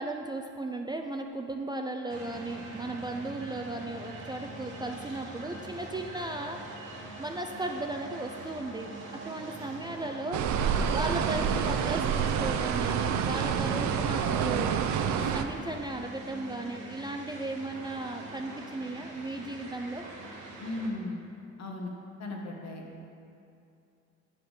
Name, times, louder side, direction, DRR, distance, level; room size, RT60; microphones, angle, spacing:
voice 1, 0.0-6.6 7.2-8.9 9.2-10.4 10.9-14.8 15.1-20.0, right 2 dB, 15° right, 3 dB, 0.3 m, -36 dB
sound 1, 2.1-20.9, right 2 dB, 90° right, 1.2 m, -43 dB
sound 2, 10.3-15.4, right 7 dB, 70° right, 0.5 m, -28 dB
voice 2, 20.6-21.2 21.6-21.9 22.2-22.9, left 2 dB, 60° left, 0 dB, 1.3 m, -36 dB
5.6 x 5.5 x 6.4 m, 2.6 s
cardioid pair, 90°, 30 cm